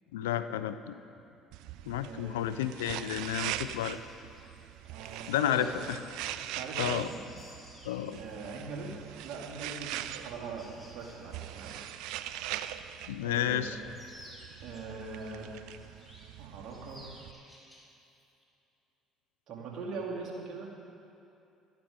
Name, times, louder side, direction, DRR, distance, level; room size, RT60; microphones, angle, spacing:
voice 1, 0.1-0.9 1.9-4.0 5.3-6.0 6.8-7.1 7.8-8.2 13.1-13.8, left 11 dB, 90° left, 12 dB, 0.4 m, -31 dB
sound 1, 1.5-17.3, right 12 dB, 75° right, 0.4 m, -42 dB
voice 2, 2.0-2.4 4.8-5.9 6.4-7.2 8.1-8.9 9.2-11.9 13.2-13.7 14.6-15.6 16.4-17.1 19.5-20.7, right 4 dB, 60° right, -2 dB, 2.7 m, -41 dB
sound 2, 3.2-13.0 13.3-15.2 15.6-16.4 16.7-17.9 18.2-18.4, equal, 10° left, 3.1 m, -56 dB
12.0 x 12.0 x 5.1 m, 2.7 s
hypercardioid pair, 65°, 0 cm